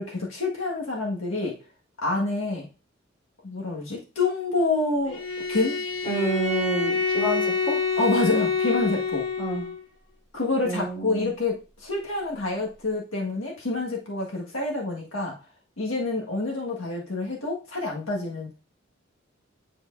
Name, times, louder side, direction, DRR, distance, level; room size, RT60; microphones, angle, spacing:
voice 1, 0.0-1.6 2.0-2.6 3.4-5.2 5.5-5.8 8.0-9.3 10.3-15.3 15.8-18.5, left 2 dB, 85° left, -2 dB, 1.7 m, -27 dB
Bowed string instrument, 5.1-9.8, left 4 dB, 70° left, 1.4 m, -26 dB
voice 2, 6.0-7.7 9.4-9.7 10.6-11.3, right 2 dB, 25° left, -3 dB, 3.4 m, -29 dB
9.9 x 4.6 x 2.6 m, 0.33 s
head